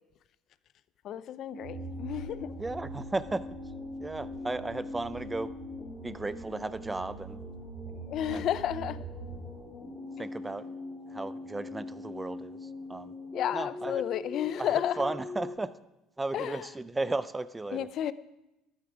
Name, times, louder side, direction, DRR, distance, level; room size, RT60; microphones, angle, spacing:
voice 1, 1.0-2.6 8.1-9.0 10.2-10.3 13.3-15.0 16.3-16.6 17.7-18.1, left 11 dB, 60° left, 16 dB, 0.5 m, -32 dB
sound 1, 1.5-15.6, left 3 dB, 20° left, 2.6 m, -42 dB
sound 2, 1.6-9.6, right 5 dB, 60° right, 2.4 m, -45 dB
voice 2, 2.6-3.5 4.0-5.5 6.0-7.4 8.3-8.5 10.2-10.7 11.1-13.2 13.5-14.1 14.6-15.7 16.2-17.9, right 2 dB, 15° right, 15 dB, 0.5 m, -35 dB
13.0 x 9.6 x 4.9 m, 0.94 s
supercardioid pair, 90°, 0 cm